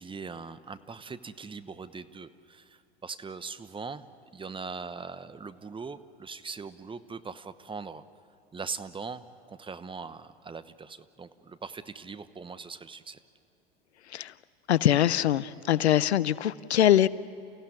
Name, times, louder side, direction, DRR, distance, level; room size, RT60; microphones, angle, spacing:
voice 1, 0.0-4.0 4.3-8.0 8.5-13.2, right 5 dB, 15° right, 13 dB, 1.0 m, -41 dB
voice 2, 14.7-17.1, left 12 dB, 85° left, 19 dB, 0.7 m, -23 dB
30.0 x 16.0 x 10.0 m, 2.9 s
hypercardioid pair, 90°, 32 cm